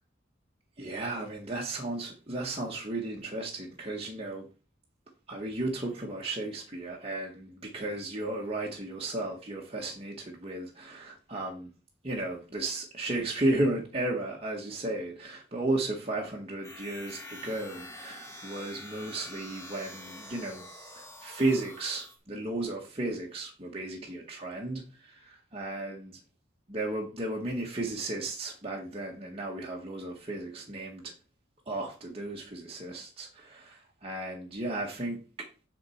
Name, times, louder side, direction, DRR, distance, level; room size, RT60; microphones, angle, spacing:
voice 1, 0.8-4.5 5.3-11.7 12.0-20.6 20.9-26.1 26.7-31.1 31.6-35.5, right 2 dB, 30° right, 1.7 m, -34 dB
sound 1, 16.6-22.2, left 1 dB, 15° left, 2.0 m, -46 dB
7.8 x 4.5 x 7.2 m
head